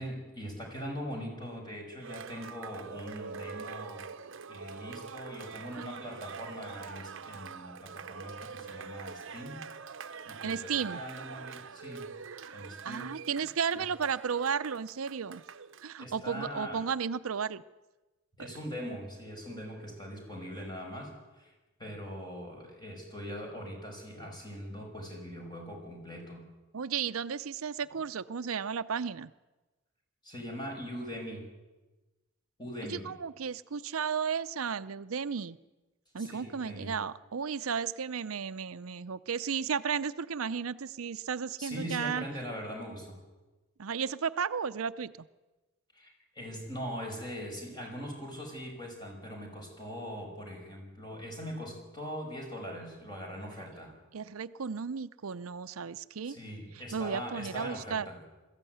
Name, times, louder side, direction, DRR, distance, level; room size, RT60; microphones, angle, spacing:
voice 1, 0.0-4.1 4.5-9.6 10.3-12.1 12.5-13.1 13.7-13.8 16.0-16.8 18.4-21.5 21.8-26.5 30.2-31.5 32.6-33.1 36.2-36.9 41.6-43.2 45.9-53.9 56.2-58.2, equal, 20° left, 1 dB, 5.7 m, -41 dB
Cheering, 2.0-15.9, right 5 dB, 65° right, 0.9 m, -44 dB
voice 2, 10.4-11.0 12.3-15.4 15.8-17.6 18.4-18.5 26.7-29.3 32.9-35.6 36.1-42.2 43.8-45.3 54.1-56.4 56.9-58.1, right 6 dB, 90° right, 13 dB, 0.6 m, -34 dB
21.5 x 14.5 x 9.4 m, 1.1 s
head